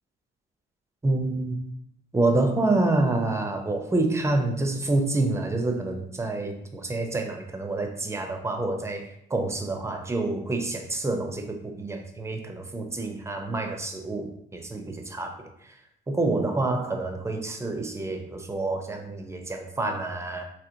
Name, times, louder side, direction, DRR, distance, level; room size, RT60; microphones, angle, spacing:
voice 1, 1.0-1.7 2.1-15.7 16.1-20.4, right 2 dB, 15° right, 4 dB, 0.5 m, -27 dB
3.0 x 2.9 x 2.6 m, 0.71 s
cardioid pair, 90°, 20 cm